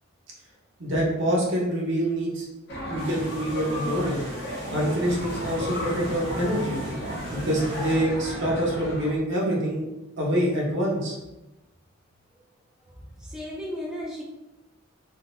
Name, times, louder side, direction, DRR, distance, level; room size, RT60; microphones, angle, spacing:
voice 1, 0.8-2.5 2.9-4.2 4.7-6.8 7.3-9.8 10.2-11.2, equal, 60° right, -3 dB, 0.9 m, -25 dB
sound 1, 2.7-9.1, equal, 55° left, 0.8 m, -34 dB
sound 2, 3.0-8.0, right 1 dB, 30° right, 0.8 m, -42 dB
voice 2, 12.8-14.2, equal, 5° right, -4 dB, 0.4 m, -35 dB
3.7 x 2.4 x 2.6 m, 0.98 s
head